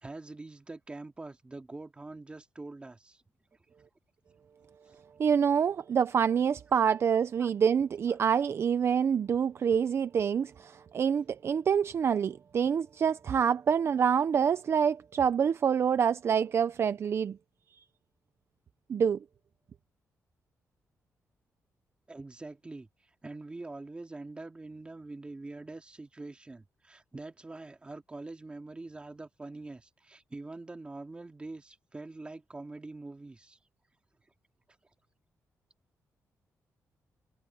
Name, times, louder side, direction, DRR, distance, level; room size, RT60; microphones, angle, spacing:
voice 1, 0.0-3.2 4.9-5.0 6.8-6.9 7.4-7.5 8.1-8.2 22.1-22.9 23.2-33.6, right 2 dB, 20° right, 2.2 m, -44 dB
voice 2, 5.2-17.4 18.9-19.2, right 7 dB, 50° right, 0.6 m, -26 dB
wide cardioid pair, 130°, 6 cm